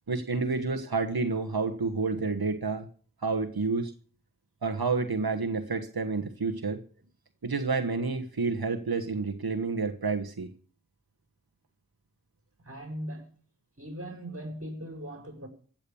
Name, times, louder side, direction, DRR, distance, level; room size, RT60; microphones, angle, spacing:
voice 1, 0.1-2.9 3.2-3.9 4.6-6.8 7.4-10.5, right 4 dB, 90° right, 1.4 m, -29 dB
voice 2, 12.6-13.3 13.8-15.5, equal, 40° right, 5.9 m, -39 dB
15.5 x 8.9 x 7.1 m
wide cardioid pair, 50°, 36 cm